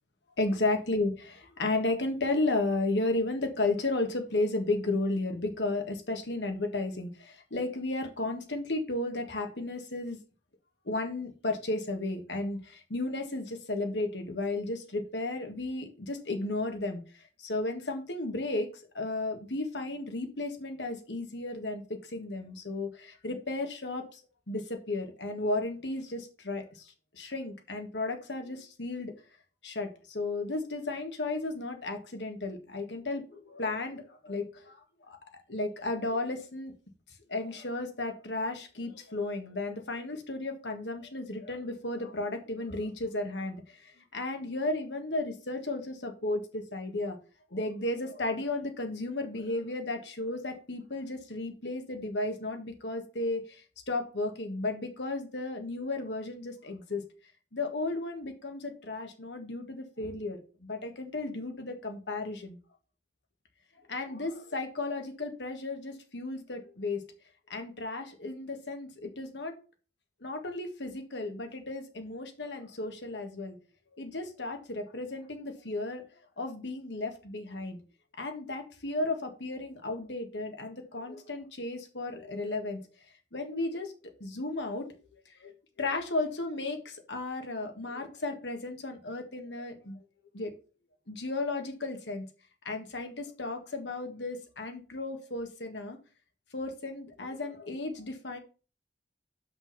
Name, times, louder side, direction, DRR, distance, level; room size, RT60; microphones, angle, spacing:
voice 1, 0.4-10.2 10.8-24.2 24.5-29.1 29.6-34.8 35.1-35.2 35.5-36.7 37.3-47.2 47.5-57.0 57.5-62.6 63.9-67.0 67.5-69.6 70.2-73.6 73.9-76.0 76.4-77.8 78.2-82.8 83.3-83.9 84.2-84.9 85.4-90.0 90.3-90.5 91.1-92.3 92.6-96.0 96.5-98.4, left 2 dB, 85° left, 5 dB, 1.7 m, -34 dB
6.3 x 5.8 x 5.5 m, 0.35 s
head